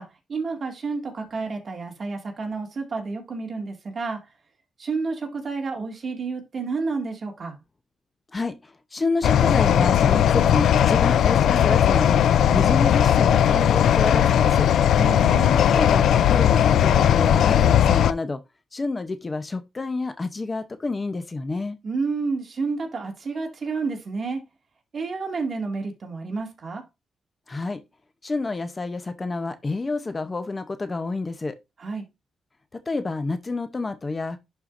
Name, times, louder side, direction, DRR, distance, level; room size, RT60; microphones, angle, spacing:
voice 1, 0.0-4.3 4.8-7.6 15.0-15.6 21.8-24.4 24.9-26.8 31.8-32.0, right 4 dB, 45° right, 2.1 m, -30 dB
voice 2, 8.3-12.3 12.5-14.7 15.5-18.4 18.7-21.8 27.5-27.8 28.2-31.6 32.7-34.4, left 3 dB, 25° left, 0.7 m, -28 dB
sound 1, 9.2-18.1, left 10 dB, 80° left, 0.4 m, -18 dB
11.0 x 4.5 x 2.6 m
cardioid pair, 105°, 0 cm